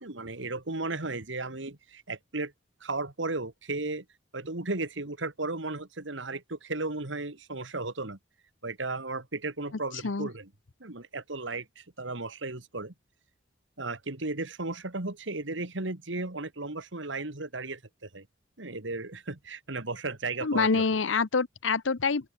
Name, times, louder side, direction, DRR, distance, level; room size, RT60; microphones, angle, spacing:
voice 1, 0.0-2.5 2.8-4.0 4.3-8.2 8.6-10.5 10.8-12.9 13.8-18.3 18.6-20.8, right 3 dB, 80° right, 2.3 m, -35 dB
voice 2, 20.4-22.3, left 4 dB, 85° left, 0.9 m, -26 dB
open air
head